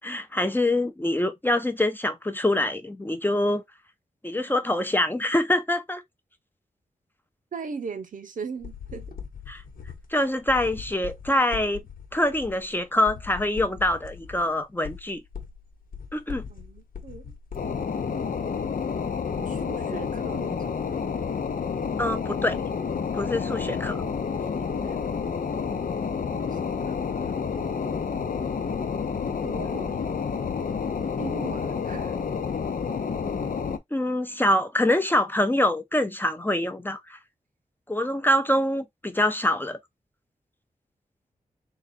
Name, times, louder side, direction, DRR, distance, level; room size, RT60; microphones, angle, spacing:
voice 1, 0.0-3.6 4.2-6.0 9.5-9.6 10.1-11.8 12.1-15.2 16.1-16.4 22.0-22.6 23.1-24.0 33.9-37.2 37.9-39.8, left 1 dB, 15° left, 0.6 m, -25 dB
voice 2, 7.5-9.1 16.5-17.3 19.4-21.0 24.4-25.0 26.4-26.6 26.9-27.3 29.4-30.1 31.2-32.2, right 5 dB, 65° right, 0.8 m, -39 dB
sound 1, 8.6-17.8, left 7 dB, 90° left, 1.1 m, -41 dB
sound 2, 17.5-33.8, left 6 dB, 70° left, 0.8 m, -29 dB
3.9 x 2.4 x 4.2 m
wide cardioid pair, 110°, 14 cm